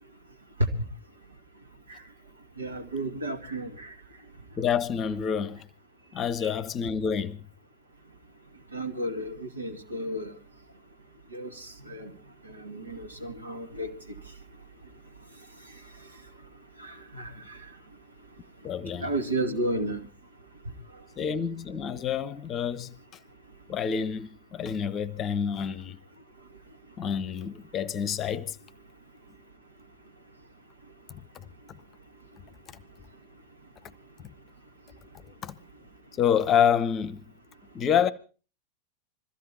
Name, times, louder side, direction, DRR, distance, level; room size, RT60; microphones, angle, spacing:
voice 1, 2.6-3.9 8.7-10.3 11.3-11.5 11.9-12.1 12.6-13.9 16.8-17.3 19.0-20.0, right 1 dB, 80° right, 2.0 m, -32 dB
voice 2, 4.6-5.6 6.1-7.4 18.6-19.1 21.2-22.9 23.7-26.0 27.0-28.6 35.4-35.5 36.2-37.2 37.7-38.1, left 8 dB, 30° left, 0.8 m, -27 dB
21.5 x 14.5 x 4.2 m
figure-of-eight pair, 90°, 0 cm